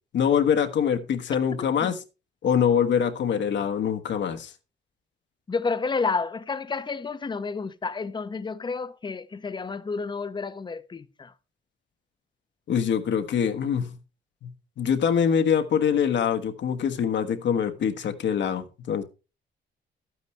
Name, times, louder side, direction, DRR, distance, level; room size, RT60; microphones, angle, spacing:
voice 1, 0.1-2.0 2.4-4.5 12.7-14.0 14.4-19.0, left 7 dB, 65° left, 1.3 m, -24 dB
voice 2, 5.5-11.3, left 4 dB, 25° left, 0.7 m, -30 dB
12.0 x 9.2 x 3.2 m
cardioid pair, 90°, 20 cm